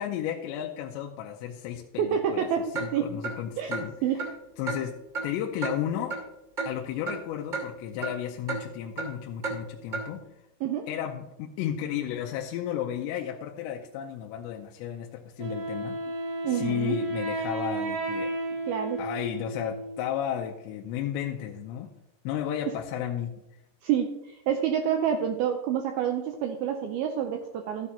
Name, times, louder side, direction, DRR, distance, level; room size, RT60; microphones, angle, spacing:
voice 1, 0.0-3.9 4.6-6.2 6.7-10.3 10.9-16.0 16.4-18.3 19.0-21.9 22.2-23.4, left 10 dB, 85° left, 1 dB, 2.9 m, -33 dB
voice 2, 2.0-2.6 2.9-3.1 3.6-3.7 4.0-4.2 10.6-10.9 16.4-17.0 18.7-19.0 22.7-22.8 23.8-27.9, right 9 dB, 85° right, 5 dB, 2.2 m, -28 dB
Clock, 2.7-2.9 3.2-3.3 3.7-3.8 4.2-4.3 4.7-4.8 5.1-5.3 5.6-5.7 6.1-6.2 6.6-6.7 7.1-7.2 7.5-7.6 8.0-8.1 8.5-8.6 9.0-9.1 9.4-9.6 9.9-10.0, right 4 dB, 20° right, 1.3 m, -31 dB
Wind instrument woodwind instrument, 15.4-20.2, right 2 dB, 65° right, 4.6 m, -33 dB
13.0 x 9.5 x 2.8 m, 0.89 s
omnidirectional pair, 5.1 m